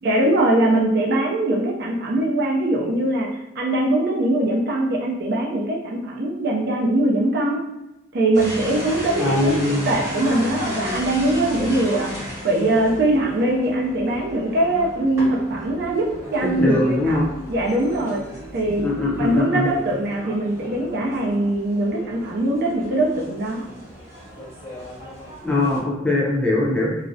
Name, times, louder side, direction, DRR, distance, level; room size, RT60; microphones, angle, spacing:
voice 1, 0.0-3.3 3.6-7.6 8.1-18.2 18.5-18.9 19.2-23.7, right 1 dB, 55° right, -1 dB, 0.4 m, -22 dB
sound 1, 8.3-25.8, left 1 dB, 15° right, 0.9 m, -35 dB
voice 2, 9.2-9.9 16.5-17.2 18.8-19.7 25.4-26.9, left 2 dB, 5° left, -5 dB, 0.4 m, -21 dB
2.4 x 2.0 x 2.6 m, 0.96 s
head